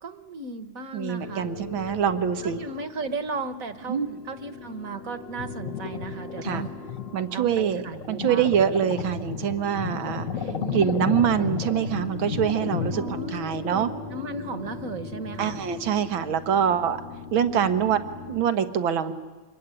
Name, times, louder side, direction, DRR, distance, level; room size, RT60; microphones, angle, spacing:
voice 1, 0.0-1.5 1.9-2.0 2.4-4.0 4.2-6.7 7.3-8.5 10.4-11.0 12.9-15.6, right 3 dB, 50° right, 11 dB, 1.6 m, -35 dB
voice 2, 0.9-2.6 3.9-4.1 6.4-6.6 7.1-10.3 10.7-13.9 15.4-17.0 17.3-18.0 18.3-19.1, right 8 dB, 90° right, 10 dB, 2.1 m, -24 dB
sound 1, 1.2-18.4, left 2 dB, 70° left, 2.4 m, -39 dB
sound 2, 5.4-13.3, left 8 dB, 50° left, 1.3 m, -33 dB
26.0 x 22.0 x 9.9 m, 1.3 s
omnidirectional pair, 2.1 m